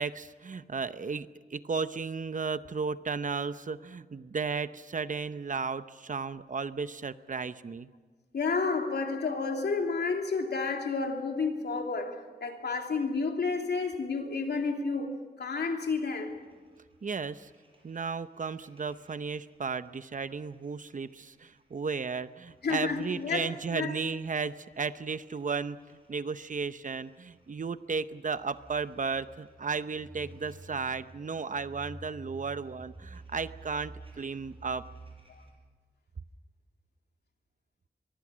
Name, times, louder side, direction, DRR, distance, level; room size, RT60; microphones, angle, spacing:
voice 1, 0.0-7.9 17.0-17.5 17.8-34.8, right 5 dB, 50° right, 0.8 m, -34 dB
voice 2, 8.3-16.4 22.6-24.0 35.3-35.4, left 4 dB, 85° left, 2.8 m, -31 dB
sound 1, 16.3-35.5, right 2 dB, 35° right, 6.1 m, -53 dB
24.0 x 23.0 x 6.3 m
wide cardioid pair, 100°, 17 cm